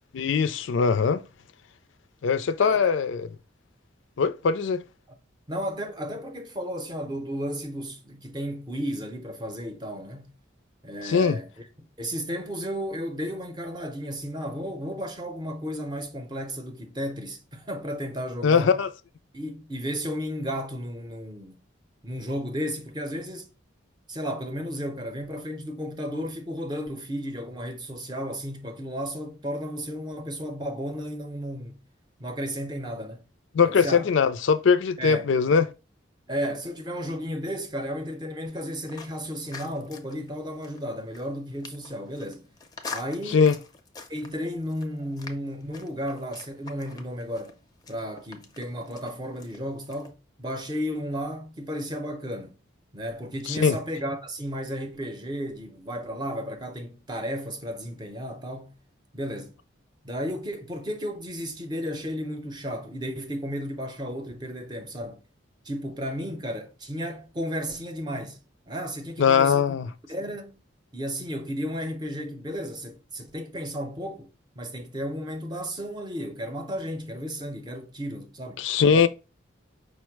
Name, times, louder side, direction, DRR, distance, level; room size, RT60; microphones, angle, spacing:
voice 1, 0.1-1.2 2.2-3.3 4.2-4.8 11.0-11.4 18.4-18.9 33.5-35.7 43.3-43.6 53.5-53.8 69.2-69.9 78.6-79.1, left 6 dB, 80° left, 0.4 m, -21 dB
voice 2, 2.6-3.0 5.5-10.3 10.8-18.8 19.3-21.6 22.0-23.5 24.1-31.8 32.2-33.2 33.6-34.1 35.0-35.3 36.3-42.5 42.9-43.4 44.1-47.6 47.9-52.6 52.9-58.8 59.1-59.6 60.0-65.2 65.6-68.4 68.7-69.7 70.1-70.6 70.9-74.3 74.6-78.7 78.9-79.1, equal, 20° right, 0.6 m, -33 dB
Walking on a gravel road, 38.5-50.1, left 4 dB, 20° left, 0.5 m, -45 dB
5.1 x 2.1 x 4.5 m
head